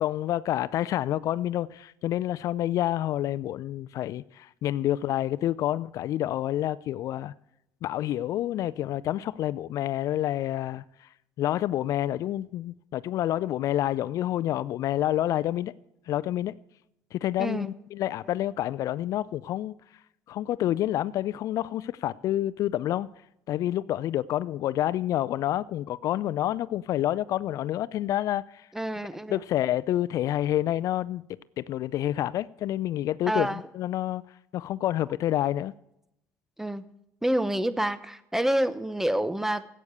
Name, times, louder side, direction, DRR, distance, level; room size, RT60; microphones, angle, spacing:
voice 1, 0.0-7.3 7.8-11.1 11.4-15.7 16.1-16.5 17.1-19.7 20.3-23.1 23.5-28.7 29.3-31.2 31.6-34.2 34.5-35.7, left 13 dB, 60° left, 0.4 m, -28 dB
voice 2, 17.4-17.7 28.7-29.4 33.3-33.6 36.6-36.8 37.2-39.7, right 1 dB, 5° right, 0.8 m, -27 dB
14.0 x 8.6 x 6.7 m
supercardioid pair, 85°, 6 cm